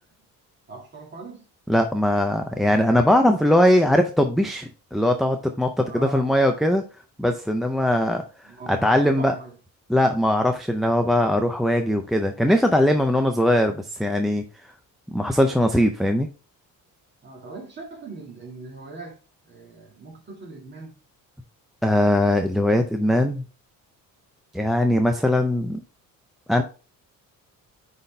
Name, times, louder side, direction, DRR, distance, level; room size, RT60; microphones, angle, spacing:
voice 1, 0.7-1.5 5.8-6.3 8.4-9.6 17.2-19.2 19.4-21.0, right 3 dB, 30° right, 2.1 m, -40 dB
voice 2, 1.7-6.8 7.2-8.2 8.7-9.3 9.9-14.4 15.1-16.3 21.8-23.4 24.5-25.8 26.5-26.6, left 1 dB, ahead, 0.4 m, -20 dB
9.5 x 4.2 x 3.3 m
cardioid pair, 150°, 35 cm